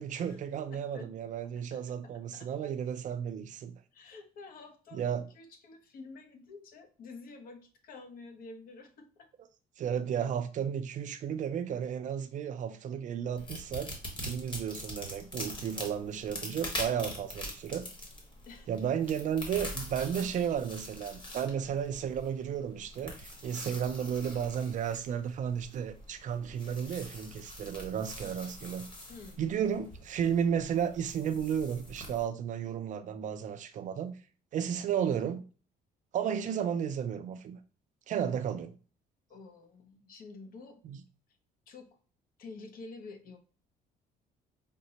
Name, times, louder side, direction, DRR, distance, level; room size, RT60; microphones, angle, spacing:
voice 1, 0.0-3.8 4.9-5.3 9.8-13.9 14.2-17.8 18.7-28.9 29.4-34.1 34.5-35.4 36.1-37.6 38.1-38.7 40.8-41.0, right 8 dB, 50° right, 0.4 m, -33 dB
voice 2, 0.7-1.1 1.4-2.7 3.9-9.3 18.5-18.9 29.1-29.4 39.3-40.8 41.7-41.9 42.4-43.4, left 3 dB, 60° left, 0.7 m, -49 dB
sound 1, 13.4-32.2, left 1 dB, 30° left, 1.2 m, -44 dB
4.9 x 2.0 x 2.8 m
cardioid pair, 110°, 17 cm